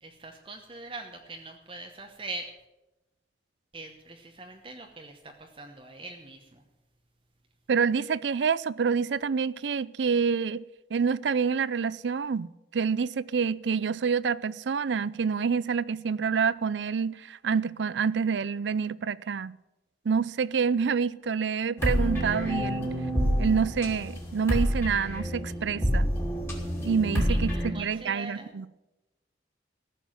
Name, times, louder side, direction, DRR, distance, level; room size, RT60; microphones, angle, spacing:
voice 1, 0.0-2.5 3.7-6.6 27.3-28.5, right 2 dB, 30° right, 1.0 m, -42 dB
voice 2, 7.7-10.6 10.9-19.6 20.1-22.9 23.4-26.1 26.8-28.7, right 6 dB, 80° right, 0.5 m, -27 dB
sound 1, 21.8-27.7, equal, 15° left, 2.4 m, -28 dB
14.5 x 7.0 x 9.1 m
head